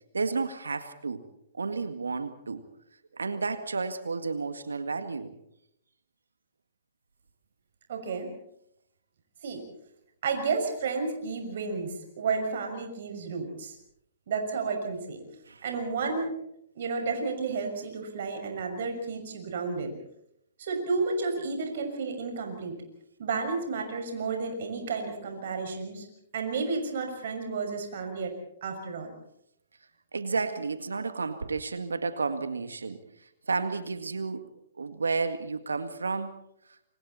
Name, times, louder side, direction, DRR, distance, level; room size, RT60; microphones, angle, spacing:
voice 1, 0.1-1.2 1.5-2.6 3.1-5.3 15.5-15.6 30.1-34.5 34.8-36.3, right 4 dB, 85° right, 10 dB, 1.9 m, -32 dB
voice 2, 7.9-8.3 9.4-9.7 10.2-13.8 14.3-15.2 15.6-16.3 16.7-20.0 20.6-22.8 23.2-26.1 26.3-29.1, right 4 dB, 60° right, 4 dB, 6.2 m, -32 dB
28.5 x 25.5 x 4.3 m, 0.74 s
hypercardioid pair, 125°, 0 cm